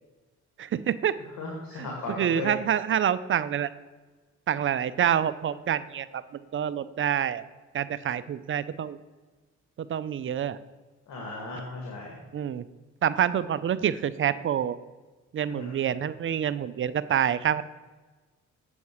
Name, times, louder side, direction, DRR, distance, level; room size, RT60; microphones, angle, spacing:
voice 1, 0.6-1.1 1.8-1.9 2.2-3.7 4.5-6.2 6.5-7.4 7.7-9.0 9.8-10.6 12.3-12.6 13.0-14.8 15.3-17.6, right 9 dB, 40° right, 15 dB, 0.5 m, -27 dB
voice 2, 1.4-2.6 11.1-12.2 15.5-15.8, left 2 dB, 70° left, -1 dB, 2.1 m, -36 dB
7.9 x 7.1 x 4.7 m, 1.3 s
cardioid pair, 90°, 30 cm